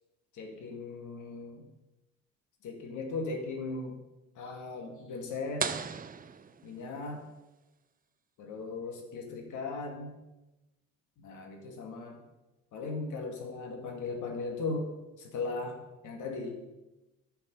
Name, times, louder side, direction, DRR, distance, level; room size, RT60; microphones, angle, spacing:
voice 1, 0.3-1.7 2.6-4.0 4.4-5.7 6.6-7.2 8.4-10.1 11.2-12.2 12.7-16.6, left 3 dB, 80° left, 2 dB, 2.1 m, -38 dB
sound 1, 5.6-7.3, right 6 dB, 30° right, 0.5 m, -37 dB
10.5 x 5.9 x 5.5 m, 1.0 s
cardioid pair, 90°, 30 cm